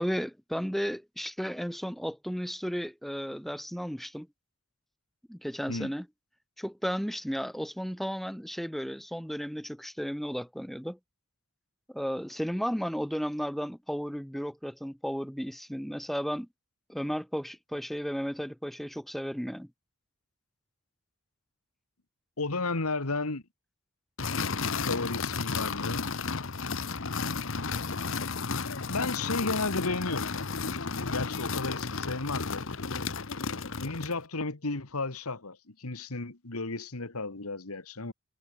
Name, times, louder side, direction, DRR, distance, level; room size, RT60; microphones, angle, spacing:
voice 1, 0.0-4.3 5.3-6.1 6.6-11.0 11.9-16.5 16.9-19.7, equal, ahead, 2.0 m, -34 dB
voice 2, 22.4-23.4 24.7-26.0 28.9-30.5 31.1-32.7 33.8-38.1, left 3 dB, 90° left, 2.0 m, -33 dB
sound 1, 24.2-34.2, left 4 dB, 65° left, 1.1 m, -33 dB
head